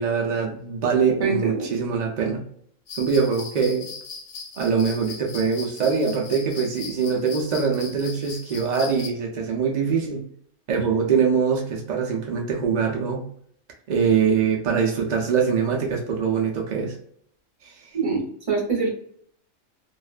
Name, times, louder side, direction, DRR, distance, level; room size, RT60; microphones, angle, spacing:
voice 1, 0.0-2.4 3.0-3.9 4.6-10.2 10.7-13.2 13.9-16.9 17.6-17.7, right 6 dB, 85° right, 0 dB, 0.3 m, -23 dB
voice 2, 1.2-1.7 17.9-18.9, right 4 dB, 30° right, -2 dB, 0.7 m, -24 dB
sound 1, 2.9-9.1, left 5 dB, 85° left, 1.0 m, -39 dB
2.5 x 2.1 x 2.4 m, 0.64 s
omnidirectional pair, 1.4 m